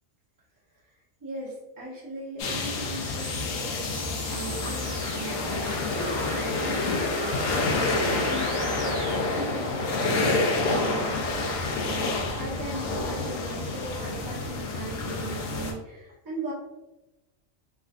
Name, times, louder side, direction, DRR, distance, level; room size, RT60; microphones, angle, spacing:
voice 1, 1.2-5.8 6.2-11.4 11.8-16.5, right 1 dB, 15° right, -7 dB, 0.8 m, -39 dB
sound 1, 2.4-15.7, left 3 dB, 75° left, 0.9 m, -28 dB
sound 2, 3.0-9.2, right 1 dB, 50° right, 0.5 m, -38 dB
3.5 x 2.3 x 2.3 m, 1.0 s
omnidirectional pair, 1.4 m